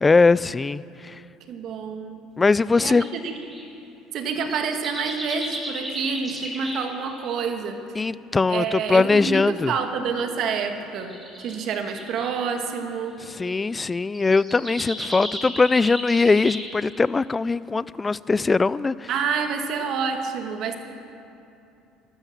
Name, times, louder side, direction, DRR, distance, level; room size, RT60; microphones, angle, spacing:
voice 1, 0.0-1.2 2.4-3.0 8.0-9.7 13.4-19.1, left 4 dB, 20° left, 19 dB, 0.3 m, -21 dB
voice 2, 1.5-2.2 2.8-3.3 4.1-8.1 8.5-13.2 19.1-20.8, right 5 dB, 60° right, 6 dB, 1.6 m, -28 dB
sound 1, 2.7-3.7 4.2-7.4 9.0-9.1 9.8-10.2 11.0-12.4 13.2-13.5 13.9-17.1, equal, 10° right, 3.7 m, -35 dB
13.0 x 12.5 x 7.3 m, 2.7 s
supercardioid pair, 95°, 0 cm